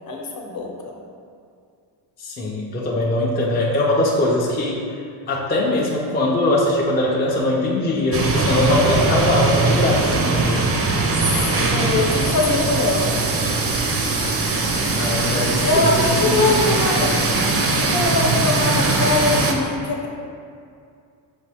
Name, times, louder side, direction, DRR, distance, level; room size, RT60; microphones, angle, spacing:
voice 1, 0.1-0.9 11.2-13.1 15.6-17.1 17.8-20.1, left 2 dB, 50° left, -1 dB, 0.9 m, -22 dB
voice 2, 2.2-5.0 5.3-10.7 15.0-16.7 16.9-17.2, left 1 dB, 20° left, -4 dB, 0.5 m, -21 dB
sound 1, 8.1-19.5, right 3 dB, 35° right, 0.5 m, -20 dB
6.2 x 2.5 x 3.4 m, 2.3 s
cardioid pair, 110°, 45 cm